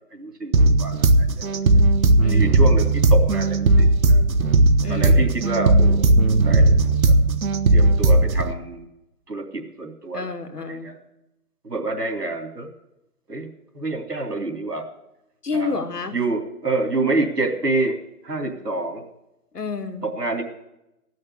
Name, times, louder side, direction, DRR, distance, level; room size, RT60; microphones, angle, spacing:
voice 1, 0.1-0.5 0.8-1.5 2.3-4.2 4.9-6.1 6.4-6.8 7.1-7.2 7.7-8.9 9.3-10.3 10.7-10.9 11.6-12.7 13.3-13.5 13.7-14.8 15.5-15.8 16.1-17.9 18.2-19.0 20.0-20.4, right 3 dB, 90° right, 3 dB, 3.1 m, -27 dB
sound 1, 0.5-8.5, right 2 dB, 60° right, 1.0 m, -17 dB
voice 2, 2.2-2.7 4.8-5.3 10.1-10.9 15.4-16.1 19.5-20.1, left 4 dB, 80° left, 8 dB, 2.0 m, -29 dB
16.5 x 6.5 x 8.1 m, 0.88 s
figure-of-eight pair, 150°, 46 cm